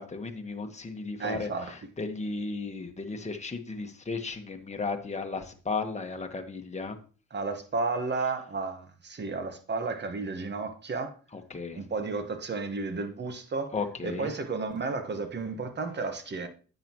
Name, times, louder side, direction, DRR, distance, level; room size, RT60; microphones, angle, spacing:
voice 1, 0.0-7.0 11.3-11.8 13.7-14.3, left 4 dB, 20° left, 1.4 m, -35 dB
voice 2, 1.2-1.7 7.3-11.1 11.7-13.7 14.0-16.5, right 3 dB, 35° right, 1.4 m, -32 dB
9.9 x 7.9 x 3.0 m
cardioid pair, 90°, 30 cm